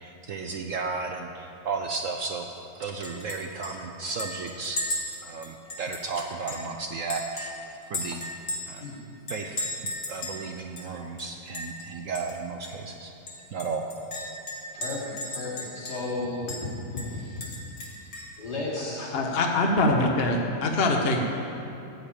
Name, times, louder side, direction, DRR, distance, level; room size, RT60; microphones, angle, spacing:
voice 1, 0.0-2.5 2.7-4.8 5.2-7.5 7.9-8.2 8.7-8.8 9.3-9.7 10.1-13.1 13.5-13.8, right 4 dB, 65° right, 3 dB, 0.9 m, -34 dB
Chink clink, 3.0-3.4 3.6-3.7 4.2-6.7 7.1-8.8 9.3-10.4 10.8-10.9 11.2-11.8 12.1-12.3 12.6-12.7 13.3-16.1 16.5-16.6 17.0-18.4, left 1 dB, 55° left, 2.1 m, -35 dB
voice 2, 14.7-17.4 18.4-19.3, left 2 dB, 70° left, -7 dB, 3.2 m, -34 dB
voice 3, 19.1-21.3, left 2 dB, 40° left, 2 dB, 1.1 m, -23 dB
14.5 x 5.1 x 8.7 m, 2.8 s
omnidirectional pair, 1.8 m